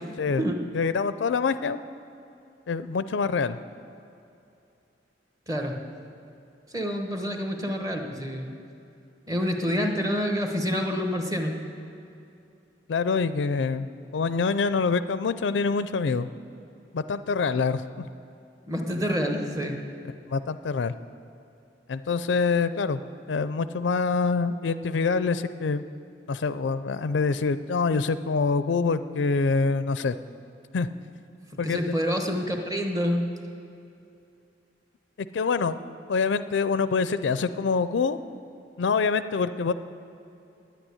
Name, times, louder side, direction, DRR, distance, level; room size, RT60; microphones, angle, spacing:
voice 1, 0.7-1.8 2.7-3.6 12.9-16.3 16.9-17.8 20.3-20.9 21.9-23.0 23.3-25.8 26.3-30.2 30.7-30.9 31.6-31.8 35.3-35.8 36.1-38.2 38.8-39.7, left 4 dB, 70° left, 13 dB, 0.4 m, -25 dB
voice 2, 5.5-5.8 6.7-8.6 9.3-11.5 18.7-19.8 31.5-33.2, equal, 20° right, 3 dB, 1.2 m, -27 dB
10.0 x 9.0 x 9.6 m, 2.7 s
head